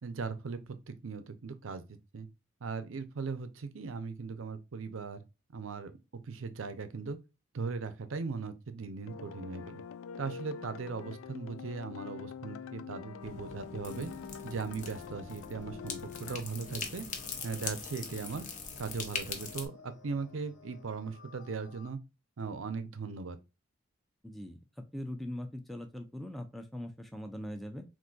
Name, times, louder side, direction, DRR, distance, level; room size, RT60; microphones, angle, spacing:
voice 1, 0.0-1.8 2.1-2.3 2.6-5.2 5.5-7.2 7.5-9.8 10.2-14.1 14.4-17.1 17.4-18.5 18.8-22.0 22.4-23.4, right 4 dB, 90° right, 0.6 m, -39 dB
sound 1, 9.0-16.4, left 6 dB, 90° left, 0.3 m, -45 dB
sound 2, 13.2-19.7, left 5 dB, 40° left, 0.6 m, -42 dB
sound 3, 13.9-21.9, left 3 dB, 70° left, 1.0 m, -55 dB
voice 2, 24.2-24.6 24.9-27.8, left 1 dB, ahead, 0.5 m, -41 dB
3.9 x 2.6 x 2.2 m
head